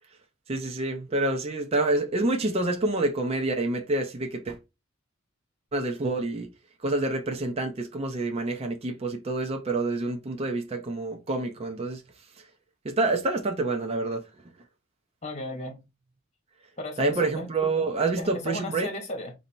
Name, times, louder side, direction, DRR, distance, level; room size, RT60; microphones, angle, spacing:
voice 1, 0.5-4.6 5.7-6.5 6.8-12.0 12.8-14.2 17.0-18.9, right 2 dB, 30° right, 0.6 m, -27 dB
voice 2, 15.2-15.8 16.8-17.5 18.2-19.3, left 1 dB, 35° left, 1.3 m, -35 dB
4.2 x 2.7 x 4.3 m
head